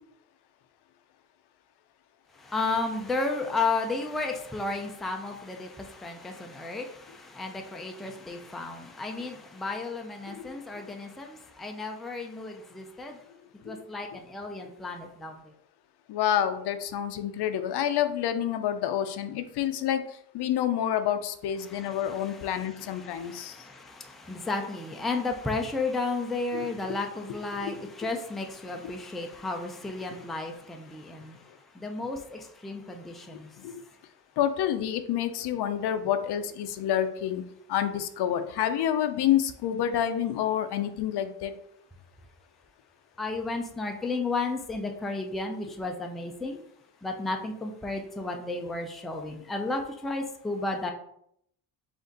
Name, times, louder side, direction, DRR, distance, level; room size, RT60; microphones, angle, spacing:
voice 1, 2.4-13.2 13.7-15.4 21.6-31.4 31.8-33.5 43.2-46.6 47.0-50.9, left 3 dB, ahead, 2 dB, 0.4 m, -33 dB
voice 2, 16.1-20.0 20.3-23.5 26.5-26.7 27.6-27.7 34.4-37.4 37.7-41.5, left 10 dB, 75° left, 10 dB, 0.6 m, -28 dB
5.1 x 2.6 x 3.9 m, 0.72 s
cardioid pair, 145°, 40 cm